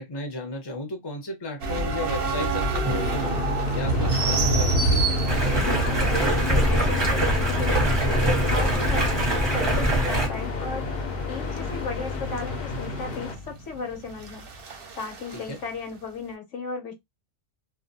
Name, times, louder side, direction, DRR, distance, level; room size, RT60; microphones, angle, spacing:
voice 1, 0.0-3.4 3.7-5.1 15.3-15.6, left 2 dB, 25° left, 0.7 m, -34 dB
sound 1, 1.6-15.4, right 1 dB, 55° right, 0.8 m, -28 dB
sound 2, 2.9-13.4, left 4 dB, 55° left, 0.8 m, -33 dB
Stream, 5.3-10.3, right 1 dB, 25° right, 0.8 m, -23 dB
voice 2, 5.5-7.9 8.4-10.9 11.3-14.4 15.0-16.9, left 4 dB, 75° left, 1.1 m, -35 dB
2.4 x 2.2 x 2.6 m
omnidirectional pair, 1.3 m